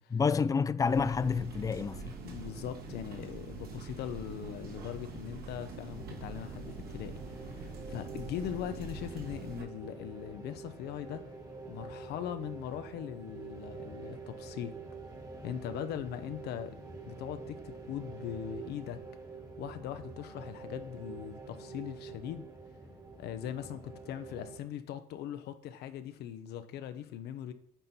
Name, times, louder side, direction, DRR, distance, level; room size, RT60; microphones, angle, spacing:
voice 1, 0.1-2.2, left 5 dB, 20° left, 0.3 m, -29 dB
sound 1, 0.9-9.6, right 3 dB, 65° right, 1.7 m, -44 dB
voice 2, 2.2-11.2 11.7-14.8 15.4-16.8 17.1-19.0 19.6-22.5 23.2-27.5, left 10 dB, 75° left, 0.7 m, -40 dB
sound 2, 5.8-24.6, right 4 dB, 20° right, 1.4 m, -47 dB
9.0 x 4.1 x 4.3 m
cardioid pair, 110°, 17 cm